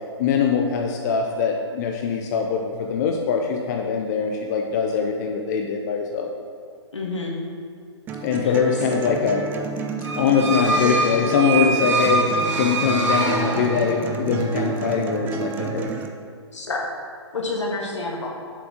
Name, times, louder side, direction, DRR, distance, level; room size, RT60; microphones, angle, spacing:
voice 1, 0.2-6.3 8.2-9.5 10.2-15.9, left 6 dB, 40° left, 2 dB, 0.6 m, -22 dB
voice 2, 6.9-7.3 8.4-8.5 16.5-16.9 17.3-18.3, left 2 dB, 80° left, -1 dB, 1.7 m, -28 dB
sound 1, 8.1-16.1, right 5 dB, 15° right, 0.4 m, -31 dB
sound 2, 10.0-14.2, right 3 dB, 85° right, 1.6 m, -24 dB
7.2 x 4.6 x 5.2 m, 2.3 s
figure-of-eight pair, 130°, 15 cm